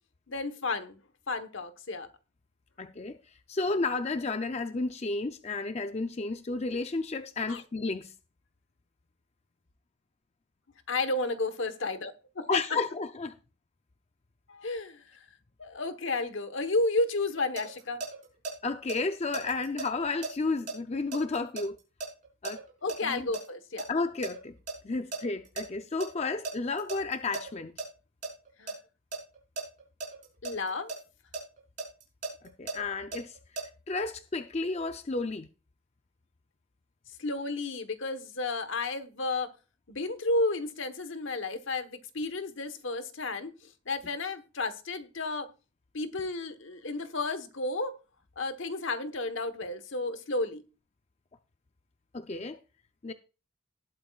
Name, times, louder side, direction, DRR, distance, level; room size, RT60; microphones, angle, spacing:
voice 1, 0.3-1.0 1.3-2.1 7.5-7.6 10.9-12.5 14.5-15.2 15.6-18.0 22.8-23.9 28.6-28.7 30.4-30.9 37.2-39.5 39.9-45.5 45.9-48.0 48.4-50.6, left 2 dB, 70° left, 1.2 m, -32 dB
voice 2, 2.8-3.2 3.5-8.1 12.5-13.4 18.6-21.8 22.4-22.6 23.0-23.3 23.9-24.5 24.8-27.8 32.6-33.4 33.9-35.5 52.1-52.6 53.0-53.1, left 3 dB, 30° left, 0.5 m, -32 dB
sound 1, 17.2-18.5 18.9-23.5 23.8-25.6 26.0-26.1 26.4-27.9 28.2-28.7 29.1-31.0 31.3-33.6, right 3 dB, 40° right, 4.6 m, -37 dB
19.0 x 8.7 x 2.4 m
head